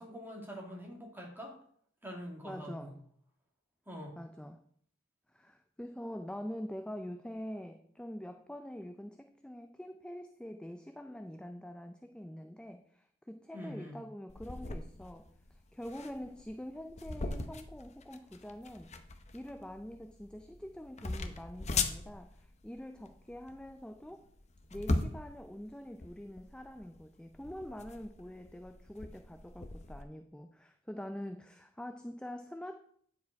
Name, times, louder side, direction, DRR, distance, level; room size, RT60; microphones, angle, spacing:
voice 1, 0.0-1.6 2.0-2.9 3.9-4.2 13.5-14.0, equal, 10° right, -1 dB, 1.9 m, -44 dB
voice 2, 2.4-3.0 4.2-4.6 5.3-18.9 19.3-24.3 24.7-32.8, equal, 5° left, 6 dB, 0.4 m, -45 dB
sound 1, 14.3-30.0, left 3 dB, 35° left, 0.7 m, -40 dB
9.7 x 4.8 x 4.6 m, 0.62 s
head